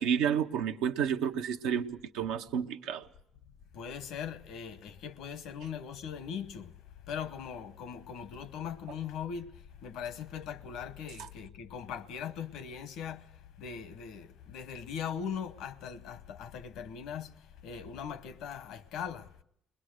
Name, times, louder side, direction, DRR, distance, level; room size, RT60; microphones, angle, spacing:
voice 1, 0.0-3.1, right 8 dB, 90° right, 0.9 m, -30 dB
voice 2, 3.7-6.7 7.1-19.3, left 7 dB, 80° left, 1.0 m, -40 dB
21.0 x 21.0 x 6.5 m
supercardioid pair, 65°, 0 cm